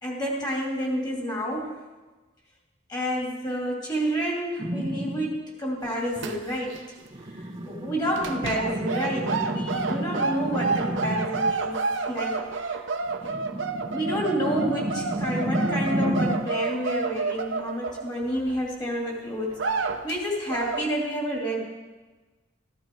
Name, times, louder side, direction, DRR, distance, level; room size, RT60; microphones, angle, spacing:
voice 1, 0.0-1.8 2.9-6.8 7.3-11.8 12.1-12.8 13.9-19.7 20.0-21.7, equal, 20° left, -2 dB, 2.8 m, -29 dB
sound 1, 4.6-5.4 7.1-11.6 13.1-16.6, right 1 dB, 25° right, 0.6 m, -31 dB
sound 2, 5.8-6.8 7.1-7.3 8.2-18.6 19.1-19.2 19.5-20.2 20.5-20.9, right 4 dB, 75° right, 0.8 m, -30 dB
14.0 x 12.0 x 4.6 m, 1.2 s
head